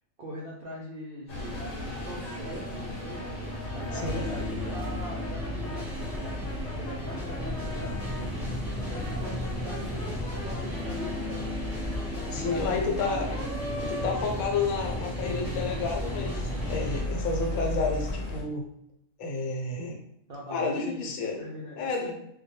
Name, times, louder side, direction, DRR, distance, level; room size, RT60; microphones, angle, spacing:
voice 1, 0.2-3.2 3.7-8.4 8.9-11.6 12.2-13.0 13.8-14.1 20.3-21.1 21.4-22.1, equal, 70° right, -4 dB, 0.5 m, -42 dB
sound 1, 1.3-18.4, left 1 dB, 45° left, 0.5 m, -36 dB
sound 2, 1.3-17.0, left 1 dB, ahead, 0.7 m, -36 dB
Brass instrument, 3.1-8.3 8.8-15.1, left 1 dB, 60° left, 0.9 m, -43 dB
voice 2, 3.9-4.3 12.3-13.3 13.9-18.7 19.2-20.0 20.5-21.4 21.8-22.1, left 4 dB, 85° left, 1 dB, 1.0 m, -30 dB
2.2 x 2.2 x 2.7 m, 0.76 s
omnidirectional pair, 1.4 m